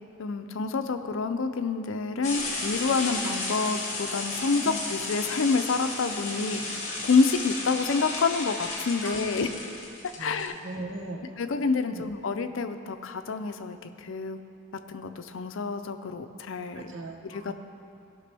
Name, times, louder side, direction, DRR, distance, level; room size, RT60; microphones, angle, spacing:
voice 1, 0.2-9.5 10.2-10.5 11.4-14.4 14.9-16.9 17.3-17.5, left 4 dB, 70° left, 9 dB, 0.5 m, -28 dB
sound 1, 2.2-10.5, left 2 dB, 35° left, 1.5 m, -34 dB
voice 2, 9.0-9.5 10.2-11.4 11.9-12.0 16.7-17.5, right 2 dB, 65° right, 2 dB, 1.0 m, -39 dB
16.5 x 6.0 x 3.4 m, 2.5 s
head